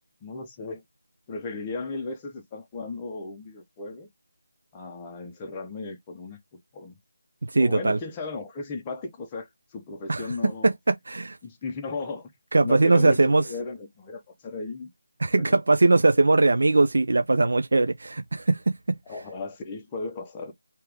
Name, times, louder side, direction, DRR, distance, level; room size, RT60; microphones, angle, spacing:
voice 1, 0.2-0.8 1.3-4.1 4.7-6.4 6.7-7.0 7.6-10.7 11.4-12.3 12.6-14.9 15.5-15.6 19.1-20.5, left 3 dB, 15° left, 0.7 m, -35 dB
voice 2, 7.5-8.0 10.1-10.3 10.6-11.4 12.5-13.4 15.2-18.7, right 2 dB, 70° right, 0.5 m, -20 dB
3.2 x 2.9 x 3.5 m
figure-of-eight pair, 170°, 0 cm